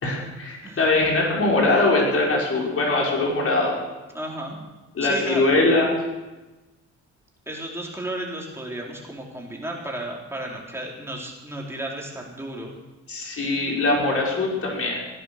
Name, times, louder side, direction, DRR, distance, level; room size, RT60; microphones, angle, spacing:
voice 1, 0.0-3.8 4.9-5.9 13.1-15.0, left 2 dB, 50° left, -2 dB, 5.7 m, -22 dB
voice 2, 4.1-4.6 5.0-5.4 7.5-12.7, right 1 dB, 10° right, -2 dB, 4.3 m, -33 dB
16.5 x 10.5 x 6.9 m, 1.1 s
cardioid pair, 90°, 30 cm